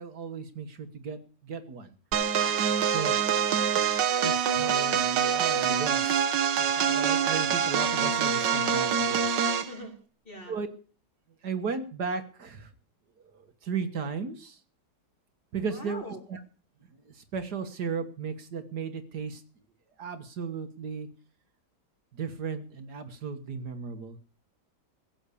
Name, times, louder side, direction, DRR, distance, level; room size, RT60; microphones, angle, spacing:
voice 1, 0.0-1.9 2.9-3.1 4.2-9.4 10.5-10.7 11.4-12.7 13.2-14.6 15.5-16.0 16.3-16.4 17.1-19.4 20.0-21.1 22.1-24.2, right 5 dB, 65° right, 8 dB, 1.9 m, -35 dB
sound 1, 2.1-9.7, right 7 dB, 85° right, 1.8 m, -25 dB
voice 2, 2.2-2.8 9.6-9.9 10.2-10.5 15.7-16.2, left 1 dB, 30° left, 1 dB, 4.0 m, -43 dB
16.0 x 7.1 x 8.4 m, 0.39 s
omnidirectional pair, 1.9 m